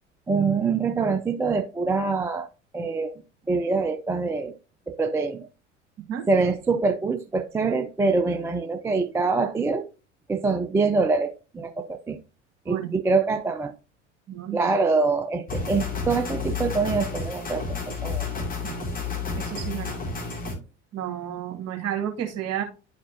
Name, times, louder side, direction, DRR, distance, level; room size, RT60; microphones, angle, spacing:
voice 1, 0.3-2.5 2.7-3.2 3.5-4.5 4.9-5.5 6.3-9.9 10.3-12.2 12.7-13.7 14.5-18.3, right 4 dB, 10° right, 7 dB, 0.4 m, -25 dB
voice 2, 14.3-14.7 18.6-18.7 19.4-20.0 20.9-22.6, right 10 dB, 45° right, 4 dB, 1.8 m, -31 dB
sound 1, 15.5-20.6, left 4 dB, 25° left, 2.4 m, -31 dB
10.5 x 4.3 x 2.7 m, 0.32 s
figure-of-eight pair, 70°, 37 cm